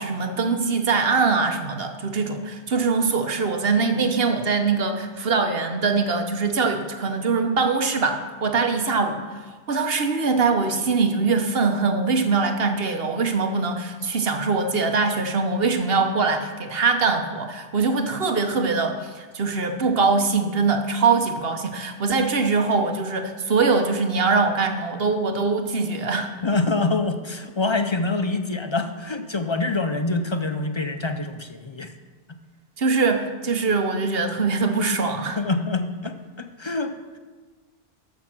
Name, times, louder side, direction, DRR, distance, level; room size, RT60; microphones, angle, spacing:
voice 1, 0.0-26.3 32.8-35.4, right 4 dB, 55° right, 6 dB, 1.1 m, -23 dB
voice 2, 26.4-31.9 32.3-32.4 35.4-37.2, left 3 dB, 40° left, 7 dB, 0.4 m, -26 dB
13.5 x 5.8 x 6.0 m, 1.4 s
omnidirectional pair, 1.2 m